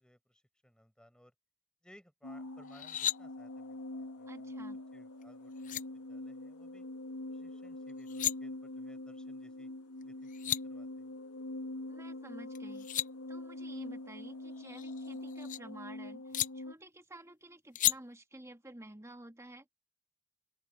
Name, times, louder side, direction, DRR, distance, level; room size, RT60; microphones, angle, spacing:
voice 1, 0.0-1.3 1.8-4.7 4.9-6.9 7.3-9.7 10.0-11.1, equal, 5° left, 6.0 m, -63 dB
sound 1, 2.2-16.7, left 2 dB, 85° left, 1.5 m, -44 dB
sound 2, 2.7-3.2 5.2-5.3 5.6-5.8 7.9-8.3 10.0-10.1 10.3-10.6 12.5-13.1 14.6-15.6 16.3-16.5 17.8-18.0, left 12 dB, 35° left, 0.5 m, -33 dB
voice 2, 4.2-4.8 11.9-19.6, right 1 dB, 15° right, 2.1 m, -52 dB
open air
head